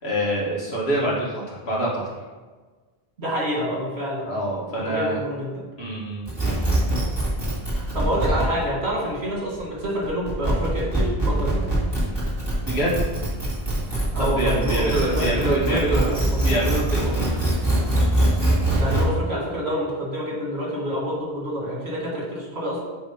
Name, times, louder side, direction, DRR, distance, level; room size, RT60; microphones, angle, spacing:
voice 1, 0.0-2.0 4.3-5.2 5.8-6.3 12.6-13.0 14.2-16.1 16.4-17.4, right 1 dB, 85° left, -6 dB, 2.1 m, -25 dB
voice 2, 3.2-4.3 4.9-5.6 7.7-11.6 14.1-16.6 18.7-22.8, equal, 85° right, -4 dB, 2.2 m, -27 dB
sound 1, 6.3-19.0, right 1 dB, 25° right, 2.1 m, -23 dB
7.9 x 3.2 x 5.4 m, 1.4 s
omnidirectional pair, 1.0 m